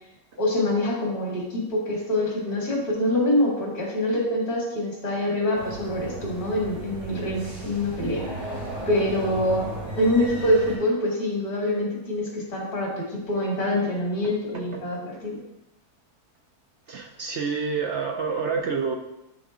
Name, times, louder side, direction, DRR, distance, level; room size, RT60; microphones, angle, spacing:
voice 1, 0.4-8.2 8.9-15.4, left 1 dB, 75° left, -3 dB, 2.7 m, -25 dB
sound 1, 5.5-10.8, right 2 dB, 85° right, 3.8 m, -35 dB
voice 2, 14.2-14.8 16.9-18.9, right 5 dB, 60° right, 2 dB, 0.8 m, -28 dB
11.0 x 4.0 x 3.7 m, 0.89 s
omnidirectional pair, 1.6 m